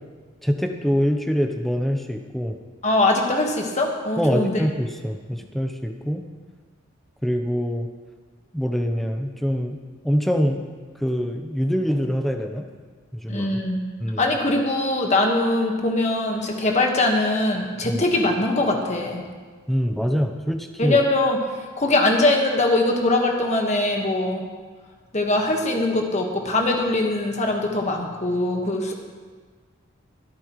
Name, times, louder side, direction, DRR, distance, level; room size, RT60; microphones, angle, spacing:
voice 1, 0.4-2.6 4.2-6.2 7.2-7.9 8.5-9.8 10.0-10.6 11.0-12.6 13.1-13.5 14.0-14.3 17.8-18.0 19.7-21.0, equal, ahead, 4 dB, 0.7 m, -24 dB
voice 2, 2.8-4.6 13.3-13.8 14.2-19.2 20.8-21.4 21.8-24.4 25.1-28.9, left 2 dB, 35° left, 1 dB, 1.5 m, -22 dB
24.0 x 8.6 x 3.2 m, 1.5 s
head